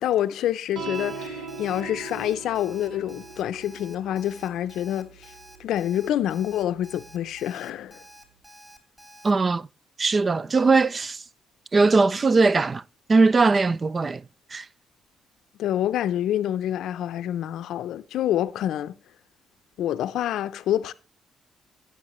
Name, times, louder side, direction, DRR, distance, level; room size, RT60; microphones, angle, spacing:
voice 1, 0.0-5.3 5.6-8.0 15.6-18.9 19.8-20.9, left 11 dB, 80° left, 0.5 m, -27 dB
sound 1, 0.7-7.4, right 4 dB, 75° right, 1.0 m, -41 dB
Alarm, 0.9-9.3, equal, 15° right, 3.3 m, -49 dB
voice 2, 9.2-9.7 10.0-11.2 11.7-12.8 13.1-14.2 14.5-14.7, right 3 dB, 35° right, 0.4 m, -20 dB
16.0 x 7.3 x 3.0 m
cardioid pair, 90°, 0 cm